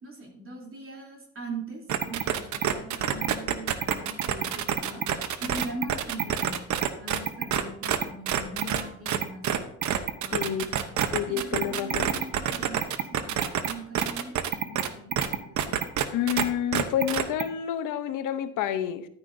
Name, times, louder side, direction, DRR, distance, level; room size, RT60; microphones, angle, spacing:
voice 1, 0.0-5.1 5.4-6.6 7.0-9.5 10.2-11.0 11.3-15.7, right 1 dB, 45° right, 0 dB, 3.0 m, -41 dB
sound 1, 1.9-16.4 16.7-17.4, right 9 dB, 70° right, 0.9 m, -27 dB
voice 2, 10.3-10.6 11.1-12.1 16.1-19.1, left 10 dB, 85° left, 10 dB, 0.8 m, -29 dB
11.5 x 9.8 x 2.6 m, 0.71 s
cardioid pair, 90°, 30 cm